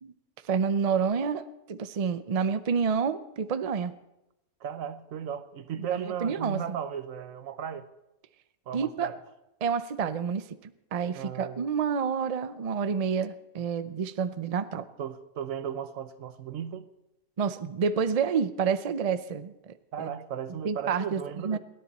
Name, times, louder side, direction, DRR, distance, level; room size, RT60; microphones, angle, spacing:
voice 1, 0.5-3.9 5.9-6.6 8.7-9.1 9.6-14.9 17.4-20.1 20.6-21.6, right 6 dB, 50° right, 0.4 m, -29 dB
voice 2, 4.6-7.8 8.7-9.2 11.2-11.7 15.0-16.9 19.9-21.6, right 8 dB, 70° right, 1.2 m, -36 dB
29.0 x 10.0 x 4.1 m
omnidirectional pair, 1.5 m